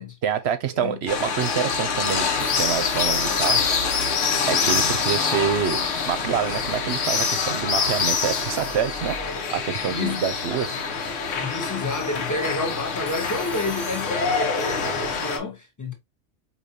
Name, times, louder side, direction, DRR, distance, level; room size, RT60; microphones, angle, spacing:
voice 1, 0.2-3.7 4.5-5.8 6.1-9.2 9.5-10.8, right 8 dB, 65° right, 0.8 m, -26 dB
sound 1, 1.1-15.4, left 5 dB, 90° left, 1.1 m, -25 dB
Telephone, 2.4-4.2 7.7-9.4 13.0-14.7, equal, 15° right, 0.9 m, -41 dB
voice 2, 9.9-10.2 11.4-15.9, left 2 dB, 15° left, 0.8 m, -29 dB
4.9 x 2.8 x 2.6 m
omnidirectional pair, 1.2 m